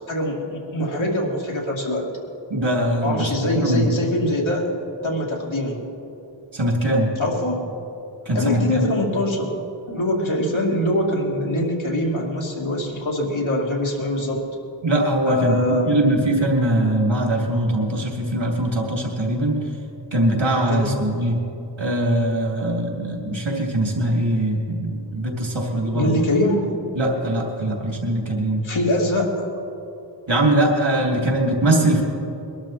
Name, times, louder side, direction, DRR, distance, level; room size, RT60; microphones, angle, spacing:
voice 1, 0.0-2.1 3.0-4.7 5.0-5.8 7.2-7.7 8.3-9.5 9.9-14.4 15.2-15.9 20.7-21.0 25.9-26.7 28.6-29.5, left 1 dB, 85° left, -3 dB, 2.7 m, -23 dB
voice 2, 2.5-3.9 6.5-7.1 8.2-8.9 14.8-19.6 20.1-21.4 21.8-26.1 26.9-28.6 30.3-32.0, right 1 dB, 80° right, 0 dB, 3.1 m, -21 dB
22.0 x 12.0 x 4.4 m, 2.9 s
wide cardioid pair, 60°, 46 cm